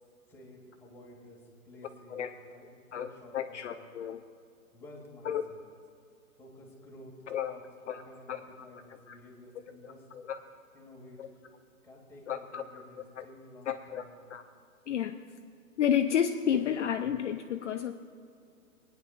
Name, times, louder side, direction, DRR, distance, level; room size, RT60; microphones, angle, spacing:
voice 1, 0.3-3.8 4.7-5.6 6.4-7.1 7.4-10.1 10.7-11.3 11.8-14.2, left 1 dB, 5° left, -3 dB, 1.5 m, -52 dB
voice 2, 3.3-4.2 5.3-5.4 7.3-7.5 7.9-8.0 8.3-8.4 10.3-10.4 11.2-11.3 12.3-12.6 13.2-13.3 13.7-14.0 14.3-14.4 14.9-15.2 15.8-17.9, left 9 dB, 55° left, 6 dB, 0.5 m, -30 dB
27.5 x 9.4 x 2.4 m, 2.3 s
hypercardioid pair, 145°, 44 cm